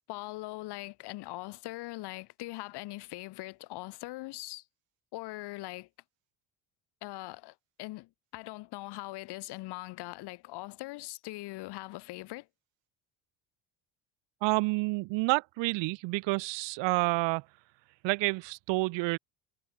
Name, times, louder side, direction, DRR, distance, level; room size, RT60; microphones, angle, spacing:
voice 1, 0.1-4.6 5.1-5.9 7.0-12.5, left 19 dB, 65° left, 2.5 m, -41 dB
voice 2, 14.4-17.4 18.0-19.2, right 24 dB, 80° right, 3.2 m, -29 dB
cardioid pair, 165°, 43 cm